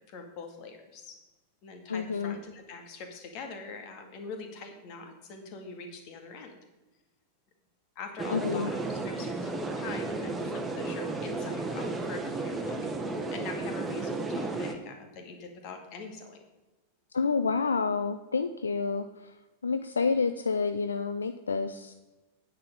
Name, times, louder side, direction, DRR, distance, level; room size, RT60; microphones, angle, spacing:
voice 1, 0.1-1.2 1.6-6.6 8.0-16.5, left 4 dB, 40° left, 5 dB, 2.1 m, -43 dB
voice 2, 1.9-2.4 8.3-8.7 17.1-19.3 19.6-21.9, left 5 dB, 75° left, 10 dB, 0.5 m, -29 dB
sound 1, 8.2-14.7, right 3 dB, 10° right, 1.4 m, -33 dB
9.5 x 8.9 x 5.4 m, 1.1 s
figure-of-eight pair, 90°, 0 cm